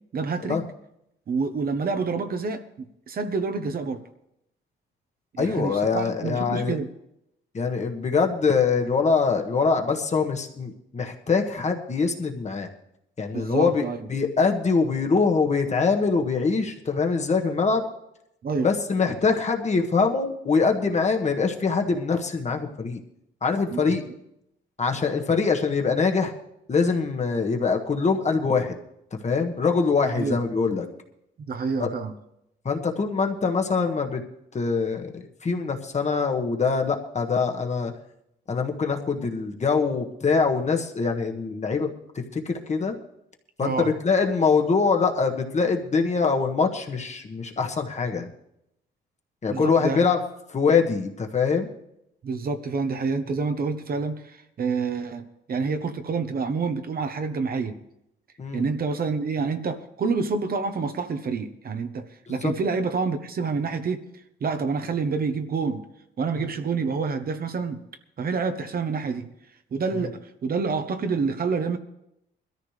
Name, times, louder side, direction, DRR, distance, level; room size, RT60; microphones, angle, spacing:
voice 1, 0.1-0.6 1.3-4.0 5.3-6.9 13.3-14.1 18.4-18.7 23.7-24.0 30.0-30.4 31.5-32.1 43.6-43.9 49.5-50.0 52.2-57.8 58.5-64.0 64.4-65.8 66.2-67.8 68.2-69.3 69.7-71.8, right 4 dB, 50° right, 8 dB, 1.0 m, -28 dB
voice 2, 5.4-6.7 7.5-12.7 13.2-13.8 14.1-17.8 18.6-23.0 23.4-24.0 24.8-26.3 26.7-28.8 29.2-30.9 31.8-31.9 32.6-34.2 34.5-37.9 38.5-41.9 42.3-42.9 43.6-48.3 49.4-50.2 50.5-51.7 58.4-58.7 62.4-62.5 66.4-66.5, left 5 dB, 35° left, 3 dB, 1.5 m, -23 dB
21.0 x 13.5 x 3.3 m, 0.81 s
cardioid pair, 90°, 20 cm